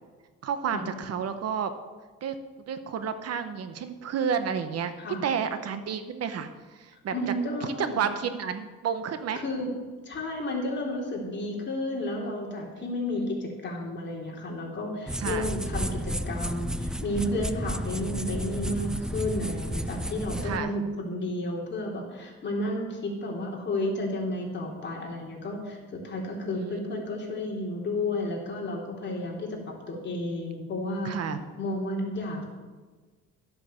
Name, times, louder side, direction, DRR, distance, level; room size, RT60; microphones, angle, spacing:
voice 1, 0.4-1.7 2.2-2.4 2.7-4.9 5.2-7.1 7.6-9.4 15.2-15.5 20.4-20.7 26.5-26.9 31.0-31.4, right 7 dB, 60° right, 10 dB, 1.0 m, -31 dB
voice 2, 7.1-8.0 9.3-9.7 10.0-29.6 29.9-31.2 31.6-32.5, left 1 dB, 40° left, -1 dB, 3.0 m, -32 dB
sound 1, 15.1-20.6, equal, 5° right, 0.4 m, -32 dB
12.5 x 8.0 x 7.0 m, 1.4 s
cardioid pair, 145°, 29 cm